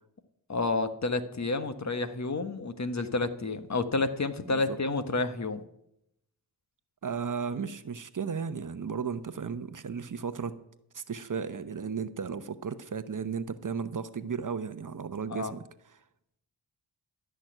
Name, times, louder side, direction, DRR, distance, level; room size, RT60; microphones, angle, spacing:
voice 1, 0.5-5.6 15.3-15.5, left 3 dB, 40° left, 9 dB, 1.4 m, -30 dB
voice 2, 4.5-4.8 7.0-10.6 10.9-15.6, right 6 dB, 45° right, 12 dB, 0.9 m, -35 dB
13.0 x 6.3 x 9.1 m, 0.80 s
cardioid pair, 60°, 44 cm